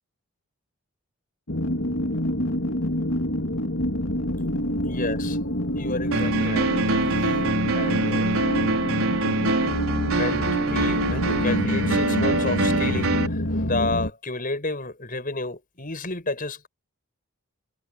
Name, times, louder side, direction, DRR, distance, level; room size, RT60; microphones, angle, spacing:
sound 1, 1.5-14.1, left 1 dB, 60° left, 3.2 m, -27 dB
voice 1, 4.8-5.4 5.8-6.7 7.2-7.3 7.7-8.4 9.5-9.6 10.1-16.7, left 2 dB, 40° left, 7.3 m, -31 dB
sound 2, 6.1-13.3, right 2 dB, 75° right, 4.8 m, -24 dB
head